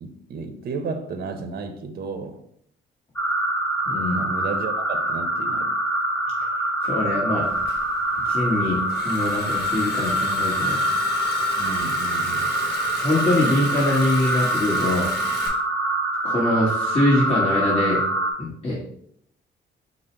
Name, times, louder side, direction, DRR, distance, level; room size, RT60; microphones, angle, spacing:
voice 1, 0.0-2.4 4.1-5.8 11.6-12.6, right 4 dB, 50° right, 7 dB, 0.6 m, -33 dB
sound 1, 3.2-18.3, right 1 dB, 10° left, 0.9 m, -25 dB
voice 2, 3.9-4.2 6.8-7.5 8.3-10.8 13.0-15.1 16.2-18.0 18.4-18.8, left 1 dB, 30° left, -6 dB, 1.3 m, -23 dB
Liquid, 7.4-15.5, left 2 dB, 55° left, 1.1 m, -36 dB
5.1 x 2.0 x 4.4 m, 0.68 s
cardioid pair, 90°, 20 cm